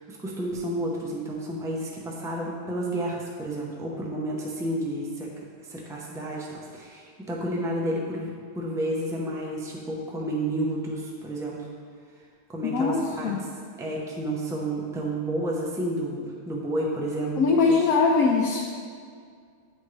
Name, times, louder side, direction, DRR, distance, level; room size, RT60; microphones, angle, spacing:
voice 1, 0.0-5.3 5.6-11.6 12.5-13.3 13.8-17.8, right 1 dB, 5° right, -2 dB, 0.5 m, -31 dB
voice 2, 12.6-13.4 17.4-18.6, left 4 dB, 75° left, -1 dB, 1.0 m, -22 dB
9.7 x 4.4 x 3.2 m, 2.1 s
omnidirectional pair, 1.5 m